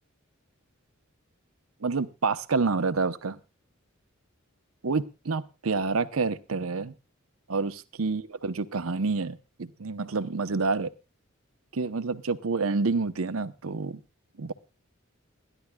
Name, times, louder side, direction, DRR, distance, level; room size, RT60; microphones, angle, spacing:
voice 1, 1.8-3.4 4.8-6.9 7.5-10.9 11.7-14.0 14.4-14.5, right 4 dB, 90° right, 12 dB, 0.8 m, -28 dB
30.0 x 11.0 x 2.3 m, 0.29 s
head